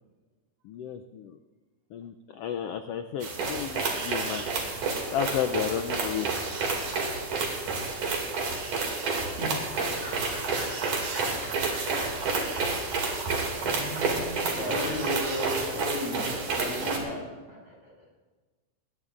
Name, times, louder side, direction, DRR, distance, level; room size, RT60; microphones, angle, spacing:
voice 1, 0.6-1.4 1.9-4.4 5.1-6.3, left 9 dB, 85° left, 7 dB, 1.3 m, -32 dB
sound 1, 3.2-17.0, right 3 dB, 90° right, 3.8 m, -30 dB
voice 2, 9.1-17.2 17.5-17.8, equal, 60° right, -3 dB, 7.4 m, -37 dB
21.0 x 19.0 x 2.5 m, 1.3 s
omnidirectional pair, 3.4 m